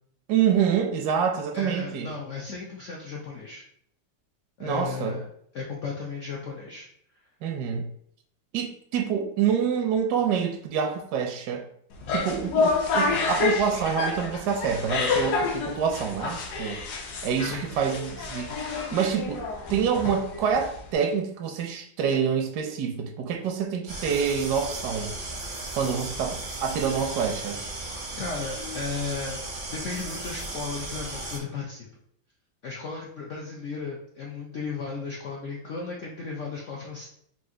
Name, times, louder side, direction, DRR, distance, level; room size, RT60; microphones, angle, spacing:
voice 1, 0.3-2.1 4.6-5.2 7.4-7.9 8.5-11.7 12.1-16.8 17.2-19.4 19.7-25.1 25.8-27.6, right 7 dB, 75° right, 4 dB, 0.9 m, -27 dB
voice 2, 1.5-3.6 4.6-5.3 5.5-6.9 17.4-17.7 28.2-29.4 29.7-31.9 32.6-37.0, left 4 dB, 85° left, -3 dB, 0.6 m, -35 dB
sound 1, 11.9-20.9, left 4 dB, 70° left, 1.1 m, -28 dB
sound 2, 23.9-31.4, right 2 dB, 55° right, 0.5 m, -36 dB
4.3 x 2.5 x 3.6 m, 0.67 s
omnidirectional pair, 2.1 m